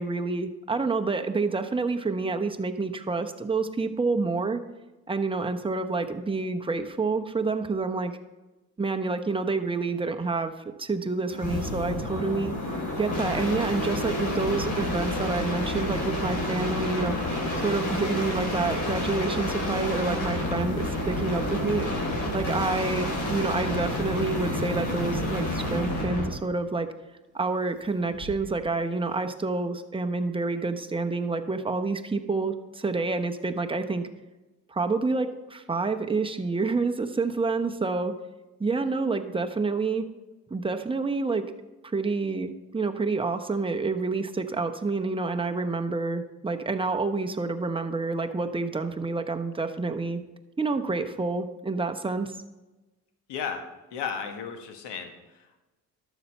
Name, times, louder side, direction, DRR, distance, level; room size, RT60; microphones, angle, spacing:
voice 1, 0.0-4.6 5.1-8.1 8.8-10.5 10.8-12.5 13.0-17.2 17.6-21.9 22.3-26.9 27.3-34.1 34.7-38.1 38.6-40.1 40.5-41.5 41.8-50.2 50.6-52.4, right 3 dB, 10° right, 6 dB, 0.9 m, -28 dB
sound 1, 11.3-26.4 28.1-28.6, left 1 dB, 40° left, 3.4 m, -29 dB
voice 2, 53.3-53.6 53.9-55.6, left 7 dB, 65° left, 6 dB, 1.5 m, -34 dB
12.0 x 7.1 x 4.3 m, 1.1 s
hypercardioid pair, 50°, 43 cm